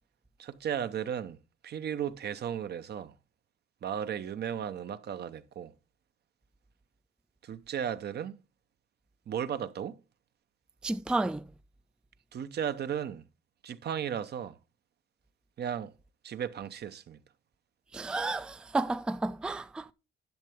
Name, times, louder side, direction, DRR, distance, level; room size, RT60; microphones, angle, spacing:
voice 1, 0.4-1.4 1.6-3.1 3.8-5.7 7.4-8.4 9.3-10.0 12.3-13.2 13.6-14.6 15.6-15.9 16.2-17.2, right 8 dB, 55° right, 0.8 m, -35 dB
voice 2, 10.8-11.4 17.9-19.9, right 2 dB, 5° right, 0.4 m, -31 dB
10.5 x 6.7 x 3.6 m
cardioid pair, 90°, 20 cm